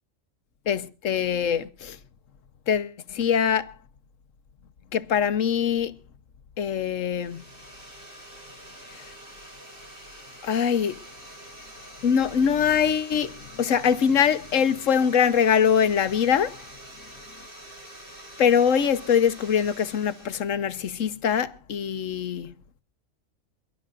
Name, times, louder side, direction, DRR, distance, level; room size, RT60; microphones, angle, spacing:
voice 1, 0.7-2.0 2.7-3.7 4.9-5.9 6.6-7.4 8.9-9.1 10.4-11.0 12.0-16.6 18.4-22.5, left 7 dB, 75° left, 1.3 m, -23 dB
sound 1, 7.1-20.6, right 1 dB, 40° right, 3.9 m, -46 dB
28.0 x 11.5 x 2.5 m
omnidirectional pair, 1.3 m